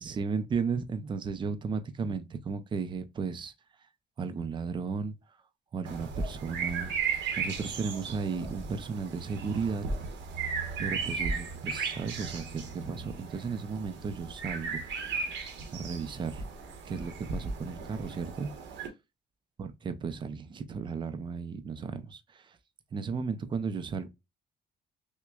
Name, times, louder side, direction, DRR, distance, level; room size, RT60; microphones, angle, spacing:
voice 1, 0.0-3.5 4.2-5.2 5.7-6.9 7.4-9.8 10.8-14.8 15.7-16.4 16.9-18.5 19.6-22.6 22.9-24.1, right 5 dB, 25° right, 0.5 m, -34 dB
sound 1, 5.8-18.9, right 5 dB, 90° right, 1.1 m, -36 dB
5.8 x 2.2 x 2.3 m
cardioid pair, 165°, 18 cm